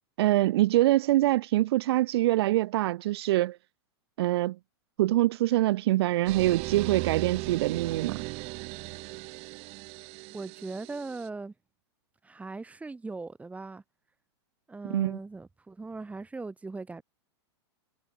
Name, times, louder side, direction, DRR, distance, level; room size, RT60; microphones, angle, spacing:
voice 1, 0.2-3.6 4.2-4.6 5.0-8.2 14.9-15.2, right 16 dB, 65° right, 0.6 m, -24 dB
sound 1, 6.3-11.3, right 26 dB, 45° right, 4.4 m, -37 dB
voice 2, 10.3-11.5 12.2-13.8 14.7-17.0, right 3 dB, 10° right, 5.6 m, -39 dB
hypercardioid pair, 120°, 14 cm